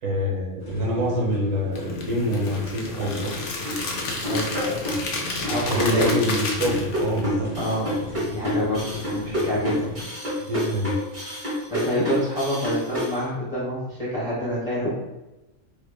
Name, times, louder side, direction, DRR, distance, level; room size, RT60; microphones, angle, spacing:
voice 1, 0.0-3.4 5.5-7.5 10.4-10.9, equal, 80° right, -4 dB, 1.0 m, -26 dB
sound 1, 0.6-10.0, left 2 dB, 55° left, 0.4 m, -36 dB
sound 2, 1.7-7.2, left 3 dB, 70° left, 0.9 m, -32 dB
sound 3, 3.6-13.1, left 1 dB, 40° right, 1.1 m, -28 dB
voice 2, 4.2-4.8 5.4-6.1 7.6-7.9 8.3-9.7 11.2-11.3 11.7-14.9, left 1 dB, 35° left, -10 dB, 0.8 m, -27 dB
3.1 x 2.0 x 2.2 m, 1.0 s
omnidirectional pair, 1.3 m